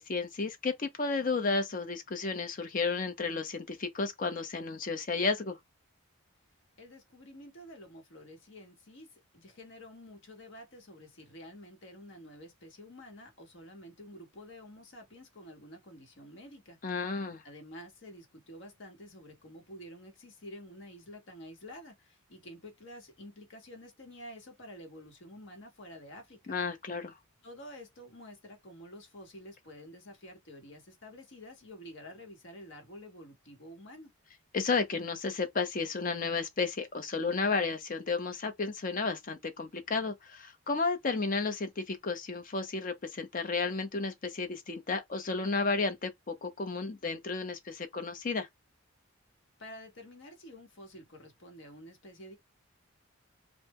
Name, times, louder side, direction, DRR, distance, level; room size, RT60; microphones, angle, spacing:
voice 1, 0.0-5.6 16.8-17.4 26.5-27.1 34.5-48.5, left 4 dB, 35° left, 0.5 m, -32 dB
voice 2, 6.8-16.8 17.4-26.6 27.4-34.1 49.6-52.4, equal, 55° left, 0.9 m, -49 dB
2.1 x 2.0 x 3.3 m
head